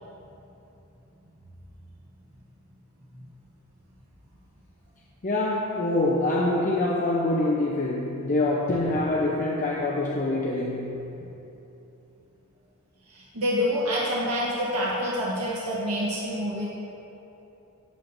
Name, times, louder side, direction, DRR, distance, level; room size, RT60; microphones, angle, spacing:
voice 1, 5.2-11.1, left 2 dB, 35° left, -4 dB, 0.8 m, -25 dB
voice 2, 13.1-16.7, equal, 85° right, -6 dB, 1.5 m, -27 dB
17.5 x 7.5 x 2.7 m, 3.0 s
head